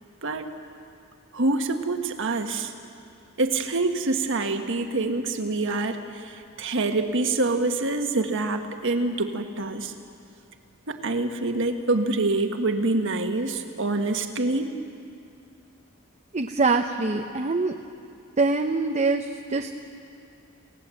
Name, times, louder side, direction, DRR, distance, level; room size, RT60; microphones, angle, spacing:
voice 1, 1.3-2.7 3.4-9.9 10.9-14.7, right 2 dB, 65° right, 5 dB, 1.5 m, -26 dB
voice 2, 16.3-17.7 18.4-19.7, right 3 dB, 35° right, 3 dB, 0.8 m, -24 dB
28.0 x 17.0 x 7.7 m, 2.5 s
head